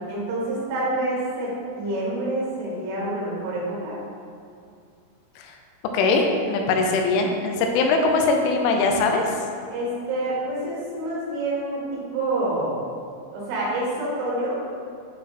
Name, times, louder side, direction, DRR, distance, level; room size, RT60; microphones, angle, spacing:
voice 1, 0.1-4.0 9.7-12.8 13.3-14.6, right 1 dB, 80° right, -5 dB, 4.2 m, -27 dB
voice 2, 5.9-9.3, left 3 dB, 85° left, 3 dB, 3.2 m, -21 dB
9.0 x 4.2 x 4.2 m, 2.4 s
omnidirectional pair, 5.6 m